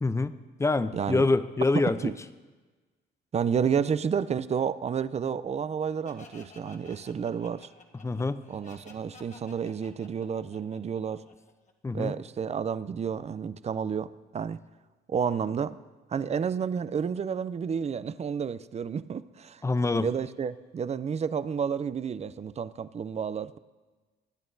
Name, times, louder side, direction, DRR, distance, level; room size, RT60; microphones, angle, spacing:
voice 1, 0.0-2.0 8.0-8.4 11.8-12.2 19.6-20.1, left 3 dB, 15° left, 12 dB, 0.5 m, -26 dB
voice 2, 3.3-7.7 8.5-11.2 11.9-14.6 15.1-15.8 16.1-19.6 20.0-23.6, right 7 dB, 35° right, 16 dB, 0.4 m, -30 dB
Laughter, 6.0-11.7, left 4 dB, 40° left, 1.3 m, -52 dB
21.0 x 9.0 x 2.7 m, 1.3 s
cardioid pair, 90°, 20 cm